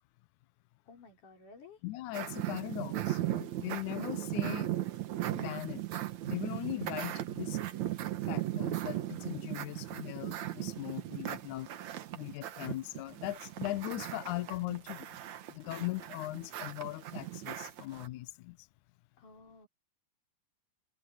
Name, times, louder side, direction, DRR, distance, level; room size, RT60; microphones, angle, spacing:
voice 1, 0.9-1.8 19.2-19.7, left 4 dB, 50° left, 6.5 m, -54 dB
voice 2, 1.8-4.7 5.3-7.6 8.2-11.7 12.1-15.1 15.5-18.6, left 17 dB, 80° left, 1.7 m, -39 dB
sound 1, 2.1-18.1, right 14 dB, 65° right, 2.0 m, -37 dB
omnidirectional pair, 4.6 m